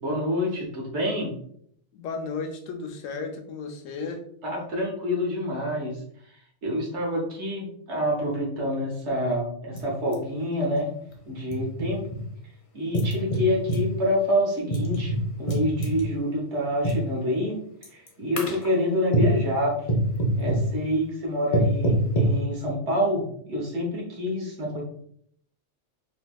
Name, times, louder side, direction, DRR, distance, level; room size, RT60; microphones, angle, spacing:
voice 1, 0.0-1.4 4.4-6.0 6.6-10.9 11.3-12.0 12.7-15.1 15.4-17.6 17.9-19.7 20.4-24.8, equal, 65° right, -1 dB, 1.3 m, -27 dB
voice 2, 1.9-4.2, left 4 dB, 85° left, 6 dB, 1.0 m, -34 dB
sound 1, 9.8-9.9 10.1-10.2 11.1-12.2 12.9-13.9 14.7-16.1 16.8-17.1 17.8-18.1 18.4-18.7 19.1-19.4 19.9-20.7 21.5-22.4, right 1 dB, 45° left, 0.4 m, -24 dB
4.3 x 2.7 x 2.3 m, 0.65 s
omnidirectional pair, 1.3 m